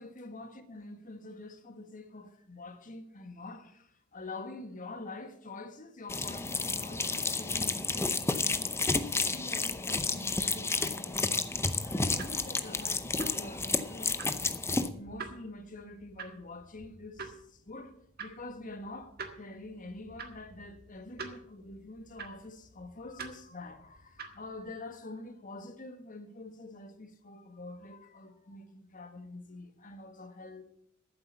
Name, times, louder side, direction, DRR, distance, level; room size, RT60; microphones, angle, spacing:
voice 1, 0.0-8.7 9.1-11.5 11.8-14.6 14.9-17.9 18.2-30.6, left 2 dB, 40° left, 1.5 m, -46 dB
sound 1, 6.1-14.9, left 3 dB, 10° left, 0.7 m, -31 dB
Clock in Room, 12.1-24.7, right 5 dB, 45° right, 1.7 m, -48 dB
13.5 x 7.8 x 7.1 m
head